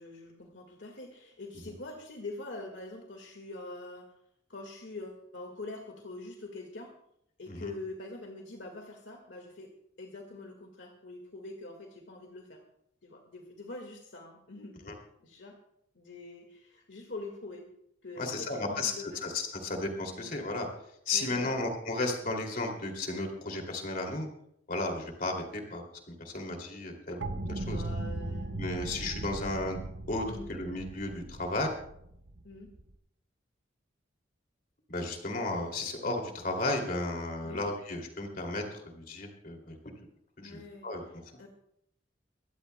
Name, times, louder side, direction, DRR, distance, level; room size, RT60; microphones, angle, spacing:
voice 1, 0.0-4.1 4.5-6.9 7.4-9.7 10.0-12.6 13.0-15.6 16.0-17.7 18.0-19.2 20.1-20.3 21.1-21.6 27.5-28.5 30.2-30.5 32.4-32.7 37.4-37.6 40.4-40.9 41.4-41.5, left 2 dB, 70° left, 2 dB, 1.8 m, -44 dB
voice 2, 18.2-18.9 19.2-20.7 21.1-24.3 24.7-27.8 28.6-29.8 30.1-31.7 34.9-39.8 40.4-41.0, left 2 dB, 45° left, 2 dB, 2.7 m, -34 dB
sound 1, 27.2-32.9, right 2 dB, 65° right, 0.9 m, -38 dB
23.0 x 16.0 x 2.2 m, 0.73 s
head